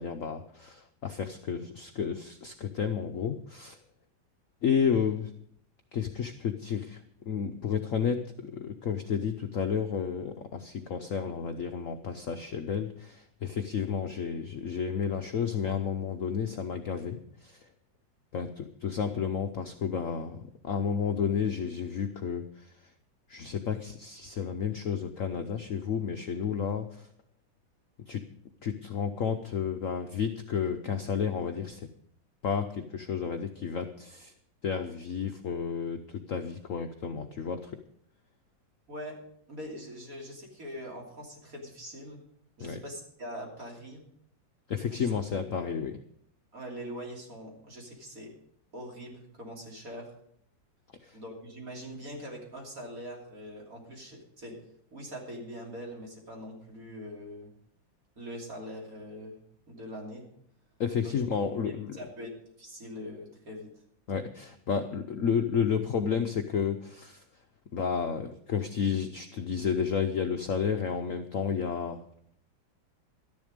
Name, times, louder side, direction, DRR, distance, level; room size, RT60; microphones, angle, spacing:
voice 1, 0.0-3.8 4.6-5.3 5.9-17.7 18.3-22.7 23.3-27.1 28.1-28.2 28.6-31.9 32.4-34.3 34.6-37.8 42.6-42.8 44.7-46.0 51.0-51.2 60.8-61.9 64.1-67.2 67.7-72.0, left 7 dB, 60° left, 6 dB, 0.9 m, -31 dB
voice 2, 38.9-39.2 39.5-42.2 42.6-44.0 44.9-45.1 46.5-48.3 48.7-50.1 51.1-54.6 54.9-57.5 58.2-60.3 61.0-61.2 61.9-62.3 62.6-63.7, equal, 45° right, -1 dB, 3.4 m, -42 dB
13.0 x 10.5 x 5.1 m, 0.67 s
omnidirectional pair, 2.1 m